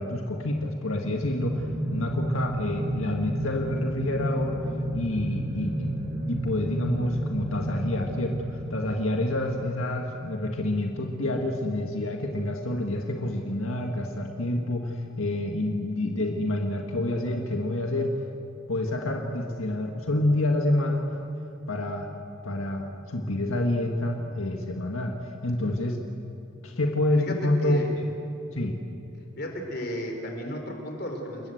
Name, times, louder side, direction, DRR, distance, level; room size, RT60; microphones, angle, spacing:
voice 1, 0.0-1.7 1.9-4.6 4.9-5.9 6.3-18.2 18.7-21.1 21.7-22.1 22.4-26.0 26.6-27.8 28.5-28.8, left 1 dB, 90° left, 2 dB, 1.8 m, -28 dB
sound 1, 0.9-9.2, right 1 dB, 75° right, 5.5 m, -32 dB
voice 2, 27.2-27.9 29.4-31.5, equal, 50° left, 3 dB, 4.2 m, -34 dB
29.0 x 20.5 x 7.9 m, 2.8 s
head